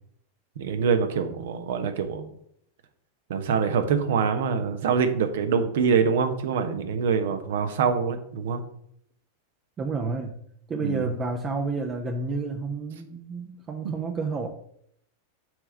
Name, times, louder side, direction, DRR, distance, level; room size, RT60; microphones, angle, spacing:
voice 1, 0.6-2.3 3.3-8.6 10.8-11.1 13.8-13.9, right 6 dB, 60° right, 8 dB, 1.0 m, -25 dB
voice 2, 9.8-10.3 10.7-14.5, right 3 dB, 25° right, 3 dB, 0.8 m, -30 dB
7.7 x 3.5 x 6.5 m, 0.69 s
figure-of-eight pair, 90°, 0 cm